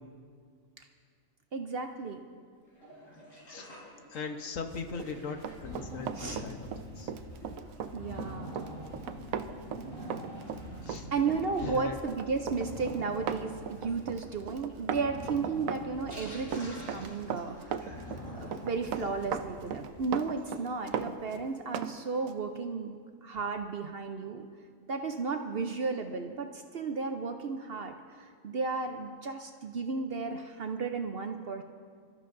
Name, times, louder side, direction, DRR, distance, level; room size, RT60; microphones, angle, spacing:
voice 1, 1.5-2.2 6.2-6.4 7.9-8.5 10.9-17.9 18.3-23.0 23.2-24.5 24.9-31.6, right 4 dB, 55° right, 5 dB, 0.8 m, -34 dB
Sink (filling or washing), 2.6-20.7 21.0-21.1 21.3-21.4 21.8-21.9, left 1 dB, 55° left, 4.8 m, -54 dB
voice 2, 4.1-7.1 10.8-11.1 11.6-12.0, left 5 dB, 70° left, 5 dB, 1.3 m, -39 dB
sound 1, 4.9-20.4, equal, 25° left, 3.1 m, -45 dB
Run, 4.9-21.9 22.3-22.4, right 8 dB, 80° right, 1.0 m, -38 dB
26.0 x 13.5 x 2.6 m, 2.1 s
omnidirectional pair, 1.4 m